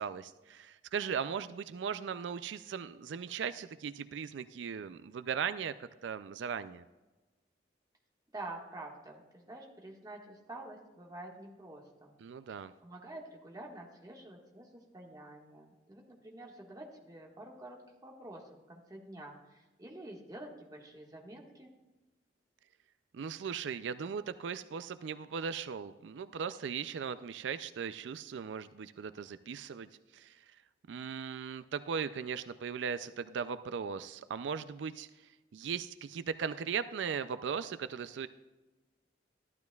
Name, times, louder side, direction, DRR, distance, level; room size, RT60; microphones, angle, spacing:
voice 1, 0.0-6.8 12.2-12.7 23.1-29.9 30.1-30.4 30.9-35.1 35.5-38.3, right 6 dB, 80° right, 12 dB, 0.4 m, -38 dB
voice 2, 8.3-12.2 12.5-21.7, right 2 dB, 20° right, 0 dB, 1.6 m, -48 dB
14.0 x 12.0 x 2.3 m, 1.1 s
head